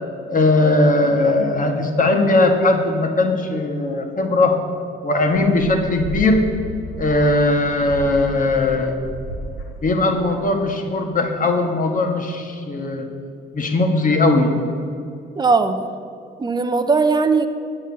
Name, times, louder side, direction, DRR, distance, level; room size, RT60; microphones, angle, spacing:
voice 1, 0.3-4.6 5.0-6.4 7.0-9.0 9.8-13.1 13.5-14.5, left 2 dB, 45° left, 3 dB, 1.7 m, -19 dB
sound 1, 5.5-10.8, right 1 dB, 85° left, 2.0 m, -34 dB
voice 2, 15.4-15.8 16.4-17.5, right 4 dB, 20° right, 8 dB, 0.8 m, -18 dB
8.6 x 7.1 x 8.5 m, 2.4 s
cardioid pair, 90°, 20 cm